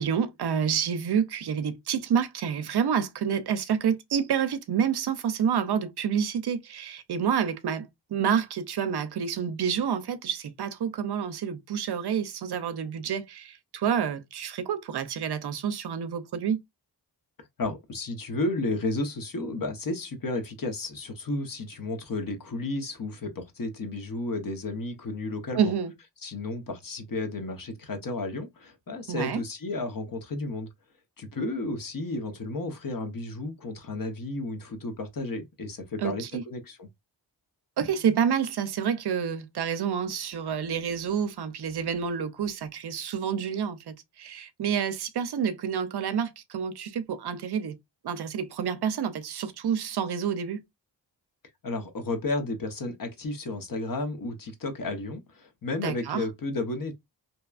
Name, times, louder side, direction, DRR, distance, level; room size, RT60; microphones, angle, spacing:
voice 1, 0.0-16.6 25.5-25.9 29.1-29.4 36.0-36.4 37.8-47.8 48.0-50.6 55.8-56.2, right 7 dB, 65° right, 0.6 m, -28 dB
voice 2, 17.6-25.7 26.2-30.7 31.2-36.9 51.6-56.9, left 2 dB, 50° left, 0.9 m, -32 dB
2.8 x 2.3 x 2.3 m
cardioid pair, 50°, 43 cm